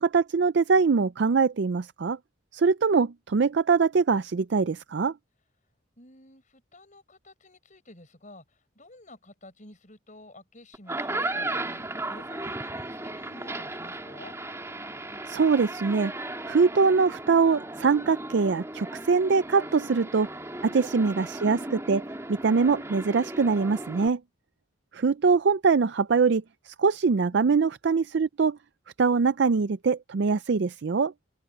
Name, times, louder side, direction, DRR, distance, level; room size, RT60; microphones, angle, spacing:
voice 1, 0.0-2.2 2.5-5.1 15.3-16.1 16.5-20.3 20.6-22.0 22.3-24.2 24.9-28.6 29.0-31.1, right 5 dB, 55° right, 0.4 m, -23 dB
voice 2, 6.0-14.4 20.5-20.8 27.3-27.5, left 1 dB, 40° left, 7.2 m, -51 dB
sound 1, 10.7-24.1, right 2 dB, 15° right, 2.5 m, -36 dB
head